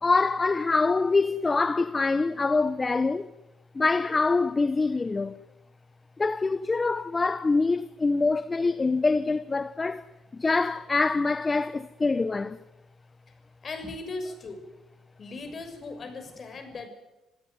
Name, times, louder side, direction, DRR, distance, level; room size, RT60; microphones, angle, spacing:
voice 1, 0.0-3.3 3.7-5.4 6.2-10.0 10.3-12.6, left 3 dB, 30° left, 0.9 m, -25 dB
voice 2, 13.6-14.6 15.2-16.9, left 3 dB, 50° left, 6.5 m, -38 dB
27.0 x 16.5 x 9.5 m
supercardioid pair, 65°, 0 cm